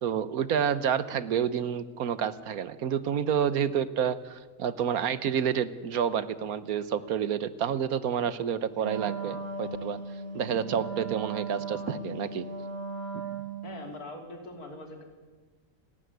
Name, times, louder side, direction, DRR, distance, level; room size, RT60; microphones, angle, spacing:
voice 1, 0.0-10.0 10.3-12.4, right 8 dB, 80° right, 14 dB, 1.5 m, -29 dB
Wind instrument woodwind instrument, 8.8-13.9, right 4 dB, 40° right, 2.4 m, -37 dB
voice 2, 13.6-15.0, left 2 dB, 90° left, 3 dB, 3.7 m, -42 dB
29.0 x 13.0 x 9.4 m, 1.4 s
omnidirectional pair, 1.5 m